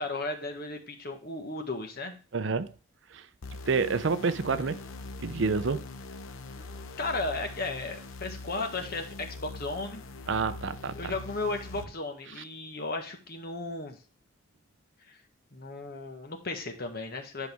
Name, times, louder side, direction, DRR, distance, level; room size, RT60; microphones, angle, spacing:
voice 1, 0.0-2.1 6.5-10.0 11.0-14.0 15.1-15.2 15.5-17.5, left 2 dB, 50° left, 1.5 m, -35 dB
voice 2, 2.3-2.7 3.1-3.3 3.7-4.8 5.2-5.9 10.3-11.1 12.4-12.5, right 4 dB, 60° right, 0.6 m, -28 dB
sound 1, 3.4-11.9, left 2 dB, 80° left, 0.9 m, -42 dB
11.0 x 5.3 x 3.5 m
head